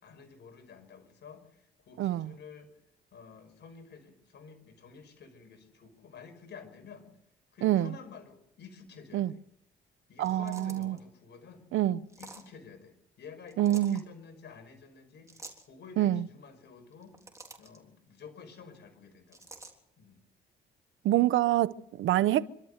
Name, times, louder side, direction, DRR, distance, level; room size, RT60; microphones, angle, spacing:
voice 1, 0.0-2.7 3.1-7.1 7.5-9.4 10.1-11.7 12.2-17.2 17.6-19.5 20.0-20.2, left 5 dB, 60° left, 5.8 m, -51 dB
voice 2, 2.0-2.3 7.6-7.9 9.1-9.3 10.2-11.0 11.7-12.0 13.6-14.0 16.0-16.3 21.0-22.5, right 13 dB, 80° right, 0.8 m, -26 dB
sound 1, 10.2-11.0 12.1-12.5 13.5-14.0 15.3-15.7 16.9-17.8 19.3-19.7, right 2 dB, 15° right, 3.7 m, -49 dB
27.5 x 13.0 x 8.1 m
cardioid pair, 90°, 20 cm